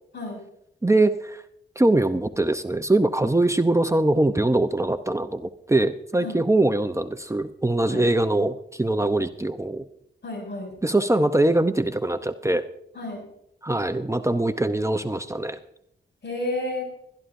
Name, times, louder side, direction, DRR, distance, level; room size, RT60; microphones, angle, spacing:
voice 1, 0.8-1.4 1.8-9.8 10.8-12.6 13.6-15.6, right 2 dB, 15° right, 9 dB, 0.7 m, -22 dB
voice 2, 10.2-10.7 12.9-13.2 16.2-16.8, left 2 dB, 65° left, 1 dB, 6.7 m, -31 dB
21.0 x 12.5 x 2.6 m, 0.74 s
cardioid pair, 55°, 19 cm